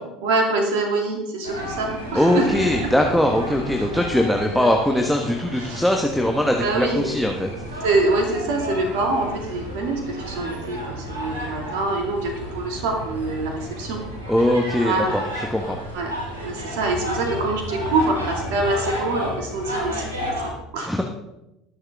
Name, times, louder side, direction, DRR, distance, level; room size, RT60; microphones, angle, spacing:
voice 1, 0.2-2.5 5.6-5.9 6.6-7.1 7.8-14.0 14.8-15.2 15.9-16.1 16.4-20.3 20.7-20.9, right 3 dB, 65° right, 2 dB, 2.4 m, -25 dB
sound 1, 1.4-20.5, equal, 85° right, 2.7 m, -32 dB
voice 2, 2.1-7.8 14.3-15.2 15.5-15.8 20.9-21.0, left 1 dB, ahead, 1 dB, 1.3 m, -21 dB
21.5 x 7.3 x 3.6 m, 0.90 s
figure-of-eight pair, 70°, 0 cm